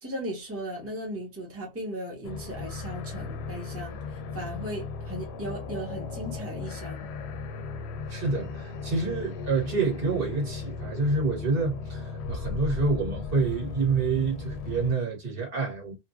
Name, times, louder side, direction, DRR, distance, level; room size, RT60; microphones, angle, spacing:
voice 1, 0.0-7.1, right 1 dB, 15° right, 1.0 m, -37 dB
sound 1, 2.2-14.9, left 5 dB, 90° left, 0.8 m, -36 dB
voice 2, 8.1-15.9, right 4 dB, 60° right, 1.5 m, -27 dB
2.9 x 2.5 x 2.3 m
omnidirectional pair, 1.1 m